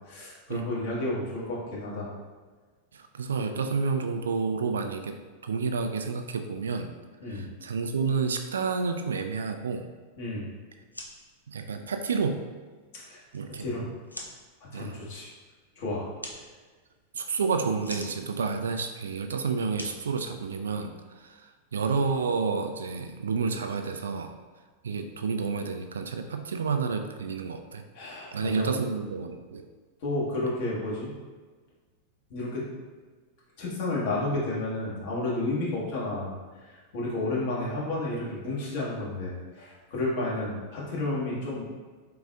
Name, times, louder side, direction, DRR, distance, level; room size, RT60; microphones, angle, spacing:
voice 1, 0.1-2.1 7.2-7.5 10.2-10.5 12.9-13.2 13.5-13.9 14.6-15.3 15.7-16.1 27.9-28.7 30.0-31.1 32.3-32.7 33.6-41.7, left 2 dB, 50° left, -6 dB, 1.3 m, -31 dB
voice 2, 2.9-5.2 5.4-6.9 7.3-9.9 11.5-12.4 13.3-13.7 14.7-15.0 17.1-20.9 21.2-24.3 24.8-27.8 28.3-29.7, right 5 dB, 65° right, 7 dB, 0.3 m, -30 dB
sound 1, 10.8-21.0, left 1 dB, 85° left, 0.5 m, -47 dB
3.9 x 3.8 x 2.4 m, 1.4 s
figure-of-eight pair, 90°, 0 cm